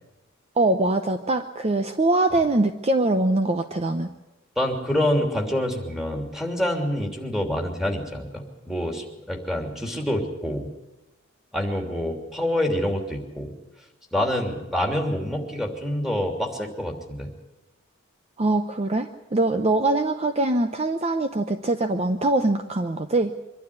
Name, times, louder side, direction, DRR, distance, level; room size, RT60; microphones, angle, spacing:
voice 1, 0.6-4.1 18.4-23.3, right 2 dB, 30° right, 8 dB, 0.8 m, -23 dB
voice 2, 4.6-10.7 11.5-13.5 14.1-17.3, left 1 dB, ahead, 1 dB, 3.1 m, -26 dB
24.0 x 12.0 x 9.6 m, 1.0 s
head